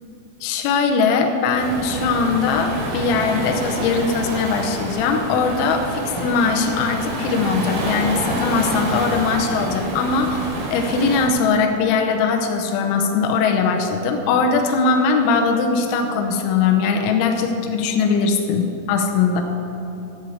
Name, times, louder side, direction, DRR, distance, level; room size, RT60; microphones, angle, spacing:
voice 1, 0.4-10.4 10.7-19.4, left 5 dB, 80° left, 3 dB, 3.1 m, -20 dB
Waves surf, 1.5-11.3, right 1 dB, 80° right, 4.4 m, -28 dB
10.5 x 7.3 x 8.1 m, 3.0 s
omnidirectional pair, 5.9 m